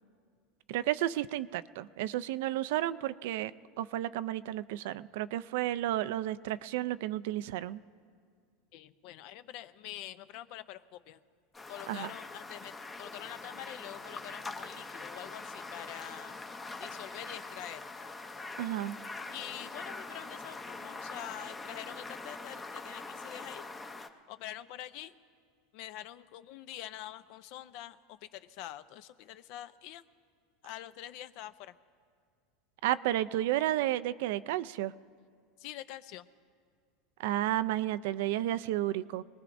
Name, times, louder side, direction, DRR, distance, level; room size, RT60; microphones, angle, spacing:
voice 1, 0.7-3.5 3.8-7.8 11.9-12.1 18.6-19.0 32.8-34.9 37.2-39.2, right 14 dB, 75° right, 15 dB, 0.3 m, -32 dB
voice 2, 8.7-11.2 11.7-16.4 16.8-17.9 19.3-23.7 24.3-25.1 25.7-30.0 30.6-31.8 35.6-36.3, left 13 dB, 55° left, 14 dB, 0.5 m, -45 dB
sound 1, 11.5-24.1, left 3 dB, 15° left, 0.6 m, -43 dB
24.5 x 19.0 x 2.6 m, 2.1 s
supercardioid pair, 150°, 0 cm